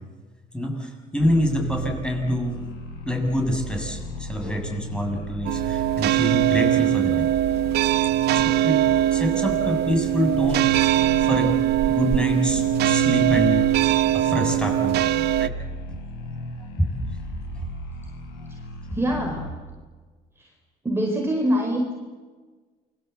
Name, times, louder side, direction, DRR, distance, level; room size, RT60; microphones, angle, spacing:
voice 1, 0.5-2.6 3.1-7.3 7.9-8.0 8.3-8.8 9.1-11.5 11.9-13.6 14.1-15.5 16.8-16.9 17.6-17.7, equal, 5° left, 2 dB, 7.2 m, -26 dB
sound 1, 1.2-19.5, left 1 dB, 80° left, 7.4 m, -36 dB
sound 2, 5.5-15.5, right 13 dB, 75° right, 0.8 m, -21 dB
voice 2, 18.9-19.4 20.8-21.9, equal, 15° right, 1 dB, 4.8 m, -24 dB
28.5 x 23.5 x 8.2 m, 1.4 s
cardioid pair, 110°, 17 cm